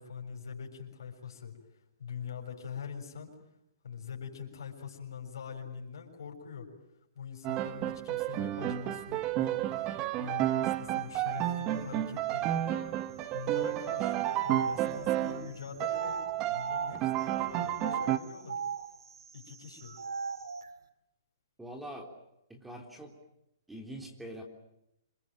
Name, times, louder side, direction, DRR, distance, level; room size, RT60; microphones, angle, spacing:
voice 1, 0.0-1.5 2.0-3.3 3.8-6.7 7.2-12.8 13.3-18.6 19.3-20.0, left 6 dB, 80° left, 2 dB, 7.0 m, -44 dB
Piano, 7.4-15.5 15.8-18.2, right 14 dB, 30° right, 1.2 m, -31 dB
sound 1, 13.8-17.2 17.8-20.7, right 5 dB, 85° right, 2.4 m, -39 dB
voice 2, 21.6-22.1 22.5-23.1 23.7-24.4, right 1 dB, 5° right, 2 dB, 3.6 m, -43 dB
27.0 x 22.0 x 9.0 m, 0.83 s
hypercardioid pair, 145°, 2 cm